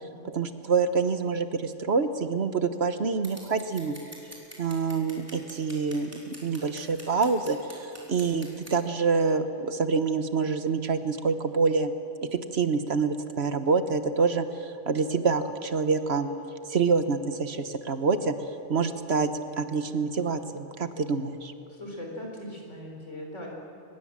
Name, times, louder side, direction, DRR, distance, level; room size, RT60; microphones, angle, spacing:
voice 1, 0.2-4.0 4.6-11.9 12.3-16.3 16.7-18.3 18.7-19.3 19.6-21.5, right 4 dB, 55° right, 9 dB, 1.3 m, -26 dB
Scissors, 3.2-8.8, equal, 10° right, 4.4 m, -47 dB
voice 2, 21.7-23.5, left 1 dB, 70° left, 0 dB, 4.9 m, -40 dB
23.5 x 21.5 x 7.5 m, 2.9 s
omnidirectional pair, 1.3 m